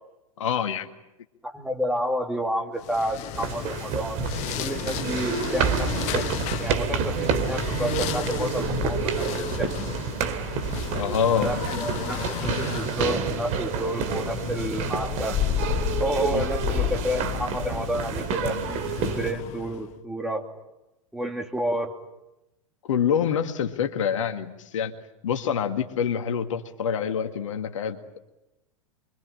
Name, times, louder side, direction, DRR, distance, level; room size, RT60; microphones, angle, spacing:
voice 1, 0.4-0.9 10.9-11.8 16.3-16.5 22.8-24.9 25.2-28.0, left 7 dB, 60° left, 7 dB, 2.0 m, -26 dB
voice 2, 1.4-4.2 4.6-6.3 6.6-9.7 11.3-15.4 16.0-18.6 19.0-20.4 21.1-21.9, equal, 5° right, 3 dB, 3.0 m, -30 dB
sound 1, 2.8-19.9, left 10 dB, 40° left, 1.4 m, -33 dB
sound 2, 3.3-19.3, right 6 dB, 40° right, 2.7 m, -29 dB
26.0 x 24.0 x 8.9 m, 0.96 s
figure-of-eight pair, 95°, 18 cm